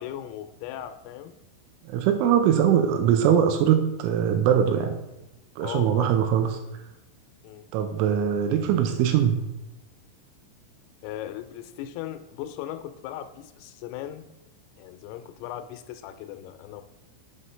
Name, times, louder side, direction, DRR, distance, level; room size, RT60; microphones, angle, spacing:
voice 1, 0.0-1.4 5.6-6.2 7.4-7.7 11.0-14.3 14.8-16.8, left 12 dB, 85° left, 9 dB, 3.1 m, -38 dB
voice 2, 1.9-4.9 5.6-6.6 7.7-9.4, right 9 dB, 80° right, 7 dB, 2.9 m, -22 dB
7.6 x 4.1 x 5.3 m, 0.95 s
omnidirectional pair, 5.9 m